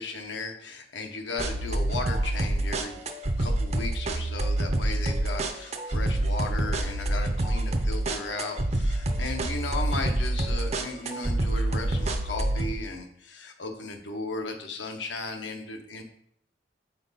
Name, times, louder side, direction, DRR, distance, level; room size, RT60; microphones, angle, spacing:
voice 1, 0.0-3.0 3.4-16.0, left 3 dB, 85° left, 4 dB, 0.9 m, -36 dB
sound 1, 1.4-12.7, right 1 dB, 35° right, 0.5 m, -27 dB
5.8 x 4.0 x 4.1 m, 0.69 s
head